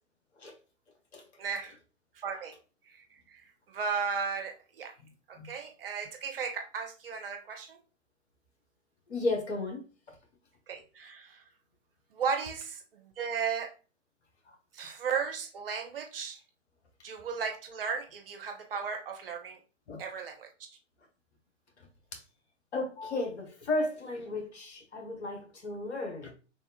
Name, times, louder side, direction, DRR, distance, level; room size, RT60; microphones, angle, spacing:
voice 1, 1.4-1.8 2.2-2.5 2.9-4.9 5.3-7.8 10.7-11.4 12.1-12.8 13.2-13.7 14.7-16.4 17.0-19.6 20.0-20.5, right 6 dB, 50° right, 0.7 m, -35 dB
voice 2, 9.1-9.8 14.5-14.6 19.9-20.0 22.7-26.3, left 2 dB, 60° left, 1.2 m, -34 dB
3.3 x 2.3 x 2.8 m
figure-of-eight pair, 115°, 37 cm